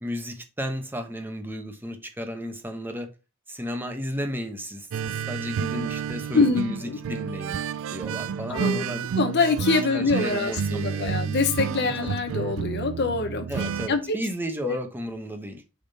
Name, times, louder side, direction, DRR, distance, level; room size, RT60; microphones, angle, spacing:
voice 1, 0.0-3.1 3.5-7.6 7.9-9.0 9.9-11.2 11.8-11.9 13.5-15.6, equal, 10° right, 1.0 m, -33 dB
sound 1, 4.9-13.9, right 7 dB, 65° right, 0.3 m, -30 dB
voice 2, 6.3-7.0 8.5-13.5 13.9-14.2 14.6-14.8, left 4 dB, 50° left, 0.9 m, -25 dB
7.0 x 3.7 x 4.1 m
head